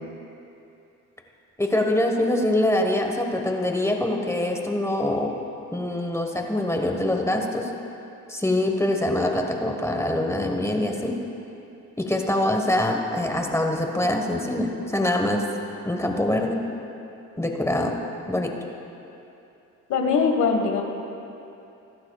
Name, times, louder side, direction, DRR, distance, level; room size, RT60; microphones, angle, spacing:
voice 1, 1.6-5.4 5.7-7.7 8.3-11.1 12.0-15.4 15.8-16.6 17.4-18.0 18.3-18.5, left 1 dB, 10° left, 2 dB, 1.3 m, -24 dB
voice 2, 19.9-20.8, left 5 dB, 75° left, 3 dB, 1.6 m, -21 dB
22.0 x 11.5 x 2.4 m, 2.8 s
cardioid pair, 90°, 30 cm